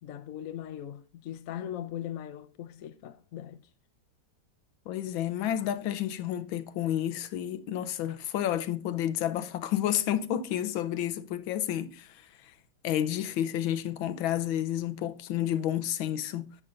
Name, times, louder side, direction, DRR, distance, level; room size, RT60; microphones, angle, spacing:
voice 1, 0.0-3.6, left 11 dB, 60° left, 0.9 m, -39 dB
voice 2, 4.9-12.3 12.8-16.6, left 11 dB, 85° left, 1.5 m, -30 dB
10.5 x 7.5 x 2.5 m
omnidirectional pair, 2.1 m